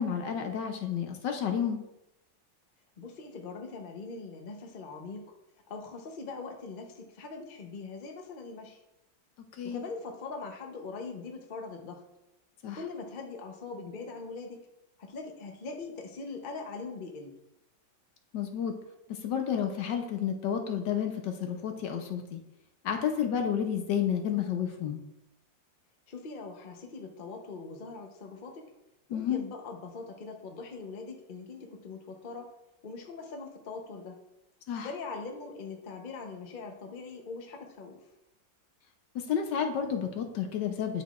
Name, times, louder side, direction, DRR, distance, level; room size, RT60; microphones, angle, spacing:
voice 1, 0.0-1.8 9.6-9.8 12.6-12.8 18.3-18.7 19.1-22.4 22.8-25.0 29.1-29.4 34.7-34.9 39.1-41.0, left 8 dB, 70° left, 4 dB, 1.4 m, -31 dB
voice 2, 3.0-5.3 5.7-8.8 9.6-12.0 12.7-14.6 15.0-17.4 26.1-28.6 29.1-32.5 32.8-34.2 34.8-38.0, left 4 dB, 40° left, 3 dB, 0.8 m, -41 dB
10.5 x 5.6 x 2.4 m, 0.88 s
omnidirectional pair, 2.0 m